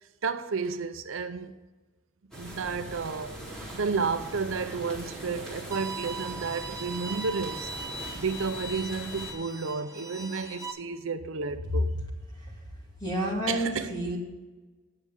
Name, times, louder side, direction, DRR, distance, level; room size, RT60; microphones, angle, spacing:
voice 1, 0.2-1.5 2.4-3.4 3.7-7.7 8.1-11.9 13.5-13.9, right 4 dB, 70° right, 0.6 m, -32 dB
sound 1, 2.3-9.3, right 1 dB, 5° left, 3.0 m, -41 dB
Bowed string instrument, 5.7-10.7, right 3 dB, 15° right, 1.0 m, -39 dB
voice 2, 13.0-14.2, equal, 20° left, 2.5 m, -29 dB
9.7 x 6.7 x 8.0 m
head